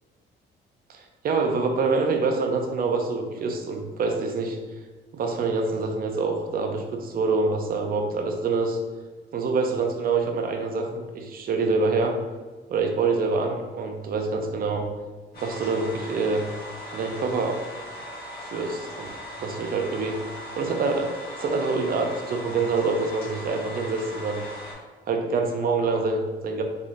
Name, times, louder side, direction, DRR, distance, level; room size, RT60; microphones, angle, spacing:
voice 1, 0.9-4.6 5.1-8.8 9.3-12.2 12.7-14.9 15.4-16.5 16.9-17.6 18.4-19.1 19.4-20.2 20.6-24.4 25.1-26.6, right 4 dB, 50° right, 4 dB, 0.5 m, -26 dB
sound 1, 15.3-24.7, left 1 dB, 50° left, 1.5 m, -39 dB
3.6 x 3.3 x 2.6 m, 1.3 s
cardioid pair, 90°, 20 cm